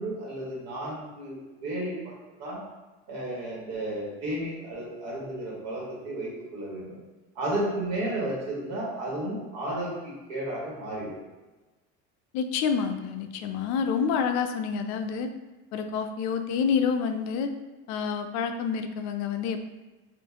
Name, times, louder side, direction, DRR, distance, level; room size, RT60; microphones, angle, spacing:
voice 1, 0.0-2.1 2.4-2.6 3.1-7.0 7.3-11.1, right 1 dB, 55° right, -4 dB, 1.5 m, -33 dB
voice 2, 12.3-15.3 15.7-17.5 17.9-19.7, left 6 dB, 65° left, 7 dB, 0.5 m, -28 dB
4.6 x 2.5 x 2.8 m, 1.2 s
supercardioid pair, 115°, 30 cm